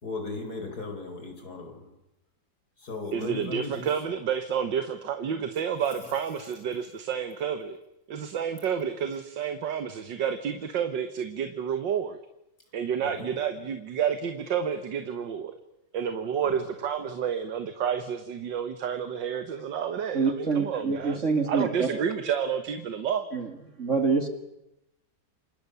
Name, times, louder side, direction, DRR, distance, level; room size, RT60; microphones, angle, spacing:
voice 1, 0.0-1.9 2.8-3.9 13.0-13.1, left 3 dB, 55° left, 4 dB, 5.2 m, -36 dB
voice 2, 3.1-7.8 8.1-12.2 12.7-15.5 15.9-21.2 21.5-23.3, right 7 dB, 75° right, 9 dB, 1.9 m, -30 dB
voice 3, 20.1-21.9 23.3-23.5 23.8-24.3, right 4 dB, 40° right, 6 dB, 2.3 m, -26 dB
28.5 x 25.5 x 6.9 m, 0.89 s
omnidirectional pair, 2.0 m